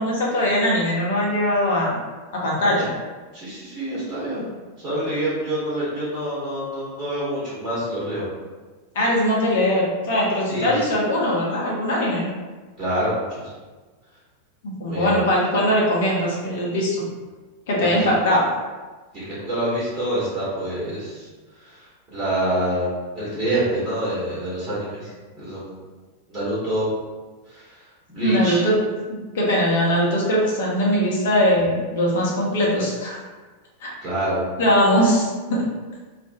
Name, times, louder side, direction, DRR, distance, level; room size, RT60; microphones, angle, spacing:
voice 1, 0.0-2.0 2.4-2.9 8.9-12.3 14.6-17.0 17.7-18.5 28.2-28.7 29.1-33.2 33.8-33.9 34.6-35.6, equal, 55° left, -4 dB, 0.7 m, -21 dB
voice 2, 3.3-4.4 4.8-8.2 10.5-10.7 12.8-13.5 14.9-15.2 17.8-18.0 19.1-21.2 22.1-22.9 23.1-25.1 25.4-25.7 26.3-26.8 27.5-27.6 28.1-28.6 34.0-34.4, right 1 dB, 25° right, -10 dB, 1.1 m, -26 dB
2.4 x 2.1 x 2.6 m, 1.3 s
figure-of-eight pair, 90°, 0 cm